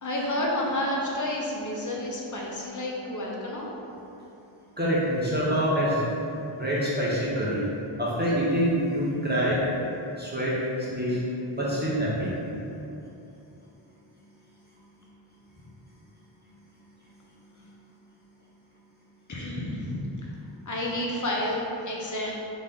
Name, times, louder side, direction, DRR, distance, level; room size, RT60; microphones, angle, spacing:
voice 1, 0.0-3.7 9.5-9.6 19.3-20.4 20.7-21.6 21.9-22.3, left 1 dB, 35° left, -3 dB, 0.8 m, -30 dB
voice 2, 4.8-6.0 6.6-7.6 8.0-9.6 10.2-10.6 10.9-11.2 11.5-12.3, equal, 20° right, -8 dB, 0.8 m, -25 dB
4.0 x 3.1 x 3.6 m, 2.9 s
wide cardioid pair, 75°, 50 cm